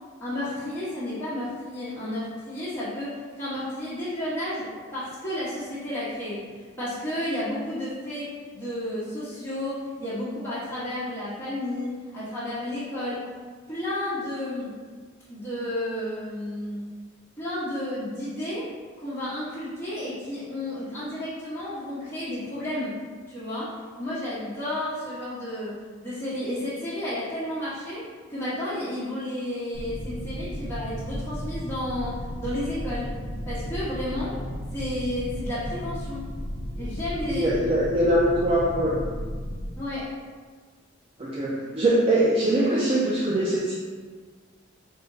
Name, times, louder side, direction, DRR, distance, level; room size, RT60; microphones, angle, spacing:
voice 1, 0.2-6.4 6.8-13.2 13.7-14.8 15.3-16.8 17.4-18.7 19.0-23.0 23.3-23.7 24.0-33.1 33.5-34.3 34.7-36.3 36.8-37.5 39.7-40.1, left 1 dB, 10° left, -12 dB, 1.1 m, -32 dB
sound 1, 29.7-39.7, equal, 45° left, 0.6 m, -34 dB
voice 2, 37.3-39.0 41.2-43.7, right 1 dB, 25° right, -5 dB, 0.3 m, -22 dB
3.5 x 2.2 x 3.8 m, 1.5 s
head